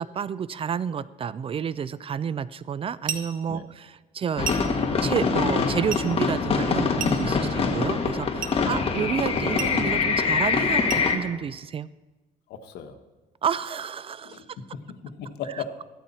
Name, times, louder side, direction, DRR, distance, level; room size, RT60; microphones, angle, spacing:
voice 1, 0.0-4.5 5.0-11.9 13.4-14.4, right 7 dB, 35° right, 18 dB, 0.4 m, -30 dB
sound 1, 3.1-3.4 4.4-4.8 5.9-6.1 7.0-7.4 8.4-8.7 9.6-9.8 10.9-11.1, right 7 dB, 55° right, 1.3 m, -33 dB
sound 2, 4.4-11.2, left 5 dB, 35° left, 1.6 m, -24 dB
voice 2, 12.5-13.0 14.2-14.5 14.7-15.7, left 6 dB, 80° left, 7 dB, 1.3 m, -37 dB
14.0 x 12.5 x 4.3 m, 1.1 s
cardioid pair, 110°, 17 cm